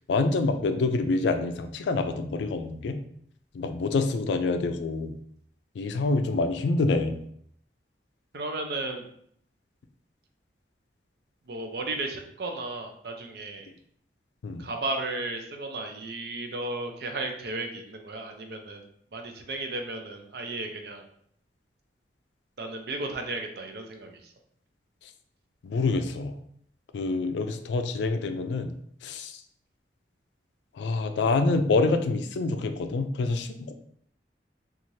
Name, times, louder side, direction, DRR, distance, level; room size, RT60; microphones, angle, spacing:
voice 1, 0.1-3.0 3.5-5.1 5.8-7.2 14.4-14.7 25.6-26.3 26.9-28.7 29.0-29.3 30.8-33.7, left 3 dB, 80° left, 8 dB, 0.3 m, -26 dB
voice 2, 8.3-9.0 11.5-13.7 14.6-18.8 19.1-21.0 22.6-24.3, right 2 dB, 60° right, 4 dB, 0.5 m, -34 dB
2.6 x 2.4 x 3.0 m, 0.67 s
head